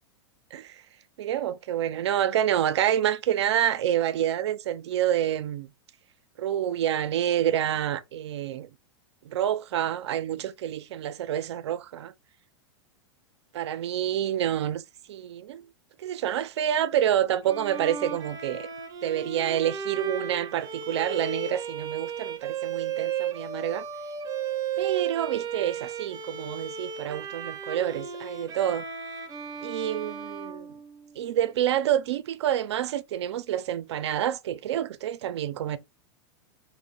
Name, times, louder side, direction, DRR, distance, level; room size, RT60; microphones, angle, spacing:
voice 1, 0.5-0.8 1.2-5.7 6.4-8.7 9.3-12.1 13.5-14.8 15.1-15.7 16.0-18.7 19.0-23.8 24.8-28.8 29.6-30.7 31.2-35.8, right 10 dB, 85° right, 0.4 m, -28 dB
Bowed string instrument, 17.4-31.3, right 7 dB, 25° right, 0.6 m, -35 dB
2.5 x 2.1 x 3.6 m
hypercardioid pair, 130°, 14 cm